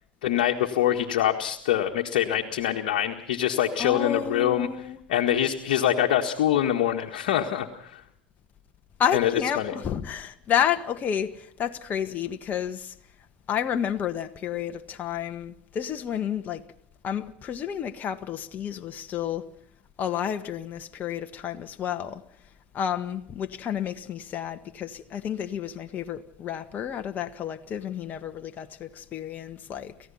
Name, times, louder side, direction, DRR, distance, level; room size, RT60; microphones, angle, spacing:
voice 1, 0.2-4.7 5.1-8.0 9.1-9.3 9.6-9.7, left 11 dB, 70° left, 1.7 m, -24 dB
voice 2, 3.8-5.0 9.0-12.9 13.5-16.6 17.0-19.5 20.0-22.2 22.7-29.9, left 9 dB, 40° left, 1.5 m, -30 dB
29.5 x 15.5 x 5.7 m
hypercardioid pair, 80°, 5 cm